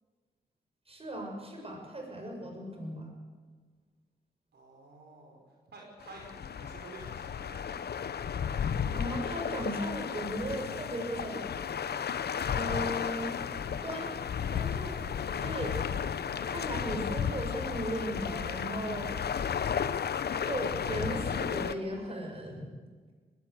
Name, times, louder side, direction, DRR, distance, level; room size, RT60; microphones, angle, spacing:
voice 1, 0.9-3.1 8.9-11.4 12.5-13.3 13.8-14.1 14.5-15.8 16.5-19.2 20.3-22.8, right 1 dB, 35° right, 2 dB, 6.9 m, -37 dB
voice 2, 4.5-5.4 5.7-7.8, right 2 dB, 75° right, 0 dB, 5.3 m, -50 dB
sound 1, 6.0-21.7, left 7 dB, 70° left, 1.0 m, -33 dB
20.0 x 17.5 x 8.1 m, 1.5 s
cardioid pair, 65°, 17 cm